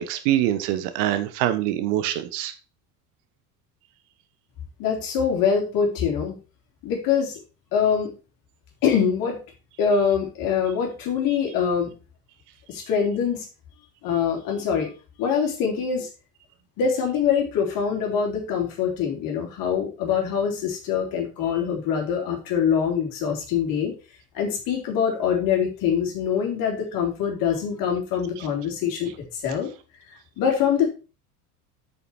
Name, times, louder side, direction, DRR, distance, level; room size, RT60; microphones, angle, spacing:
voice 1, 0.0-2.5, right 13 dB, 50° right, 10 dB, 1.3 m, -24 dB
voice 2, 4.8-6.4 6.8-7.4 7.7-8.1 8.8-9.4 9.8-11.9 12.7-13.5 14.0-14.9 15.2-16.1 16.8-23.9 24.3-29.7 30.1-30.9, left 7 dB, 45° left, 1 dB, 3.8 m, -24 dB
8.4 x 7.2 x 4.6 m, 0.32 s
figure-of-eight pair, 70°, 47 cm